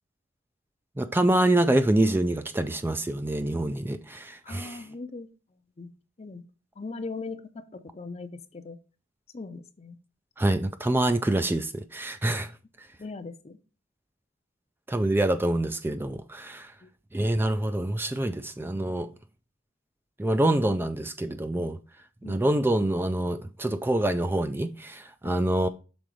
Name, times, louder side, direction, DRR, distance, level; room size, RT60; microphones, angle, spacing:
voice 1, 1.0-4.8 10.4-12.5 14.9-16.7 17.1-19.1 20.2-21.8 22.3-25.7, right 1 dB, 10° right, 0.3 m, -26 dB
voice 2, 4.4-5.3 5.8-5.9 6.2-6.4 6.8-8.8 9.3-10.0 13.0-13.6 16.8-16.9 22.2-22.4 25.2-25.4, left 3 dB, 35° left, 0.6 m, -39 dB
6.2 x 3.8 x 5.1 m
head